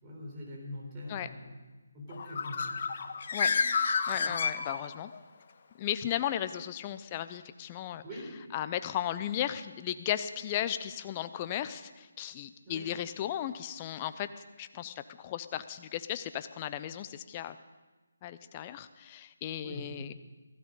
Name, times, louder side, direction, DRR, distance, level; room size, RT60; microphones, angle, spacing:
voice 1, 0.0-1.6 1.9-3.6 4.1-4.3 8.0-8.3 12.6-12.9 19.6-19.9, left 1 dB, 20° right, -3 dB, 4.1 m, -44 dB
Bird, 2.1-5.2, left 5 dB, 45° left, 0.9 m, -30 dB
voice 2, 4.1-5.1 5.8-8.0 8.5-17.6 18.2-20.1, left 11 dB, 25° left, 12 dB, 0.7 m, -35 dB
16.0 x 15.0 x 5.4 m, 1.2 s
figure-of-eight pair, 155°, 0 cm